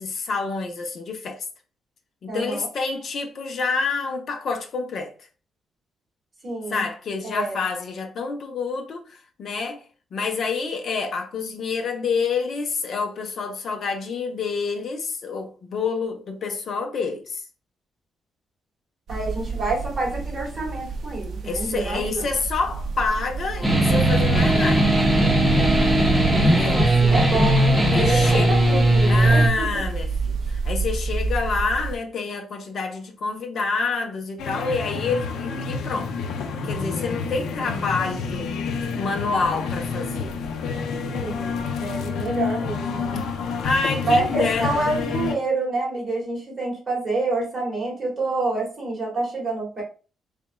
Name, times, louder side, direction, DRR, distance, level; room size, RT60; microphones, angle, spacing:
voice 1, 0.0-1.5 2.2-5.1 6.7-9.8 10.1-17.4 21.4-24.9 26.4-26.8 27.9-28.5 29.1-36.2 36.6-38.5 38.9-40.3 43.6-44.7, left 4 dB, 50° left, 0.7 m, -27 dB
voice 2, 2.3-2.7 6.4-6.9 7.2-7.6 19.1-22.3 26.7-29.8 41.2-43.2 44.0-49.8, right 2 dB, 25° right, 1.8 m, -27 dB
sound 1, 19.1-32.0, right 4 dB, 50° right, 0.5 m, -29 dB
sound 2, 23.6-29.5, right 1 dB, 5° right, 0.7 m, -18 dB
sound 3, 34.4-45.4, left 5 dB, 85° left, 0.5 m, -29 dB
4.0 x 3.5 x 2.2 m
cardioid pair, 165°, 0 cm